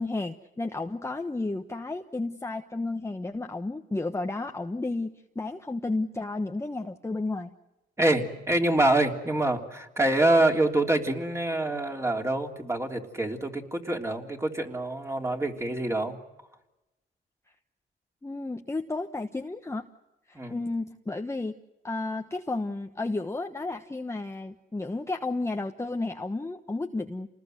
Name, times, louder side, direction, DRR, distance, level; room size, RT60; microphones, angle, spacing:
voice 1, 0.0-7.5 18.2-19.9 20.3-21.6 21.8-27.3, left 2 dB, 15° left, 4 dB, 1.2 m, -32 dB
voice 2, 8.0-16.2 20.3-20.6, right 2 dB, 15° right, 3 dB, 3.3 m, -26 dB
28.0 x 20.0 x 7.9 m, 0.98 s
cardioid pair, 90°, 20 cm